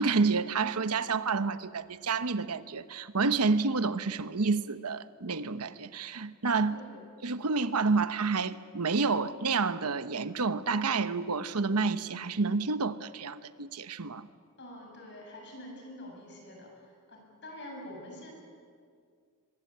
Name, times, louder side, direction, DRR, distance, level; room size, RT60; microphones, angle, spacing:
voice 1, 0.0-6.8 7.2-14.3, right 4 dB, 85° right, 1.0 m, -29 dB
voice 2, 6.7-7.1 14.6-18.3, left 1 dB, 50° left, 7.7 m, -46 dB
24.0 x 22.0 x 8.6 m
head